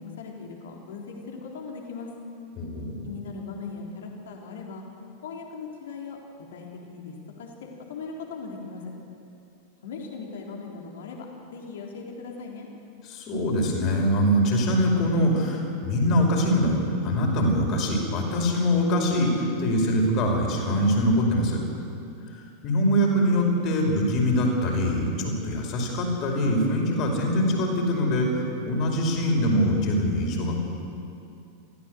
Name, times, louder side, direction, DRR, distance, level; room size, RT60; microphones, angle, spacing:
voice 1, 0.0-2.1 3.0-4.8 5.2-6.2 6.5-8.8 9.8-11.3 11.5-12.7, left 4 dB, 60° left, 0 dB, 3.8 m, -39 dB
voice 2, 2.6-3.1 13.0-21.6 22.6-30.6, equal, 40° left, 1 dB, 5.4 m, -23 dB
23.5 x 16.0 x 8.2 m, 2.6 s
figure-of-eight pair, 90°, 0 cm